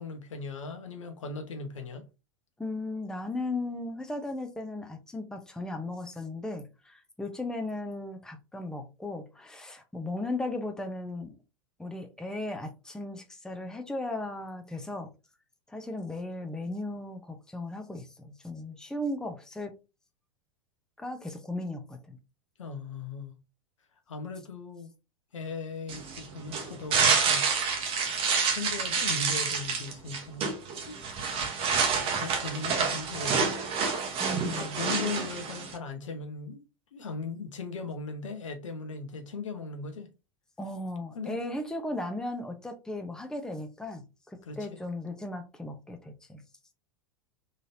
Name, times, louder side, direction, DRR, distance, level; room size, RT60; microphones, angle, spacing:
voice 1, 0.0-2.0 22.6-23.4 24.1-24.9 25.3-27.5 28.5-30.5 30.9-31.3 32.1-33.5 34.5-36.6 36.9-40.1 41.1-41.4 44.4-44.8, left 4 dB, 70° left, 0.8 m, -38 dB
voice 2, 2.6-11.4 11.8-15.1 15.7-19.7 21.0-22.2 34.2-34.8 40.6-46.4, left 2 dB, 5° left, 0.7 m, -36 dB
sound 1, 25.9-35.8, right 5 dB, 35° right, 0.9 m, -28 dB
3.9 x 3.3 x 2.7 m
figure-of-eight pair, 85°, 17 cm